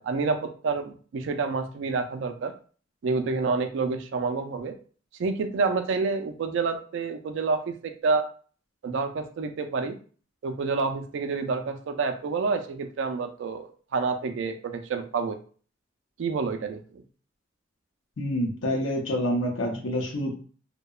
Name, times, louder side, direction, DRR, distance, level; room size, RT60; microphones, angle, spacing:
voice 1, 0.0-2.5 3.0-4.7 5.2-8.3 8.8-10.0 10.4-15.4 16.2-16.8, right 4 dB, 65° right, 6 dB, 0.3 m, -28 dB
voice 2, 18.2-20.3, equal, 70° left, 0 dB, 0.6 m, -27 dB
2.7 x 2.1 x 2.3 m, 0.41 s
head